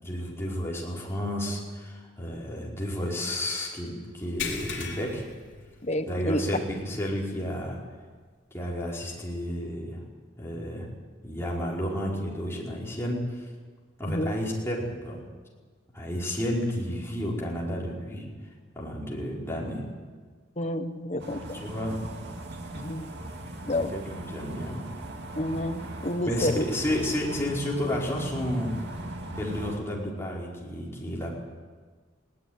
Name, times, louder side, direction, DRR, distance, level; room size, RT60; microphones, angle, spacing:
voice 1, 0.0-5.2 6.1-7.8 8.5-10.0 10.4-10.9 11.2-13.5 14.0-15.2 15.9-18.3 18.7-19.8 21.5-22.0 23.6-24.8 26.3-28.9 29.3-31.4, equal, 15° left, -4 dB, 5.0 m, -31 dB
sound 1, 4.4-6.3 6.6-6.8 7.3-7.4 9.1-9.2, left 6 dB, 65° left, 4.3 m, -37 dB
voice 2, 5.8-6.4 14.1-14.4 20.6-21.6 22.7-23.0 23.7-23.9 25.3-26.6, left 1 dB, 35° left, 7 dB, 1.2 m, -29 dB
sound 2, 21.2-29.8, right 1 dB, 55° right, 2.4 m, -39 dB
20.0 x 18.0 x 9.7 m, 1.5 s
head